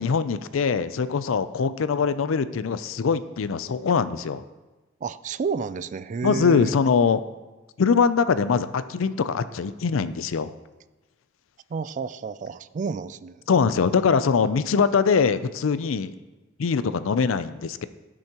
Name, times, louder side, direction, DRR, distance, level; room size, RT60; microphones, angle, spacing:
voice 1, 0.0-4.4 6.2-7.2 7.8-10.5 13.5-16.1 16.6-17.9, left 5 dB, 80° left, 13 dB, 0.4 m, -22 dB
voice 2, 5.0-6.7 11.7-13.4, right 5 dB, 40° right, 14 dB, 0.3 m, -30 dB
16.5 x 6.3 x 2.9 m, 1.2 s
head